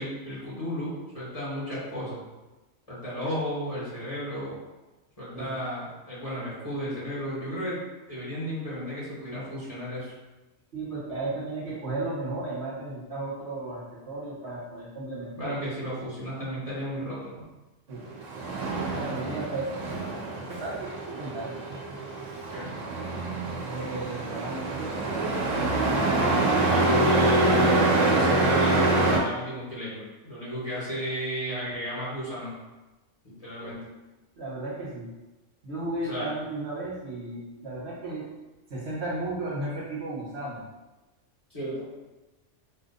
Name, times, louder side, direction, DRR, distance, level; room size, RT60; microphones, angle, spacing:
voice 1, 0.0-2.2 2.9-4.6 5.2-7.8 8.1-10.1 15.4-17.5 22.5-22.7 26.3-32.6 33.2-33.8 36.0-36.3 41.5-41.9, equal, 30° left, -8 dB, 1.6 m, -34 dB
voice 2, 10.7-15.6 17.9-18.0 18.7-19.7 20.5-21.6 23.6-24.9 33.6-33.7 34.4-35.1 35.6-38.3 38.7-40.6, right 2 dB, 60° right, -7 dB, 1.5 m, -34 dB
Truck, 18.1-29.2, right 2 dB, 80° right, 1.1 m, -25 dB
4.3 x 2.5 x 4.0 m, 1.1 s
omnidirectional pair, 1.3 m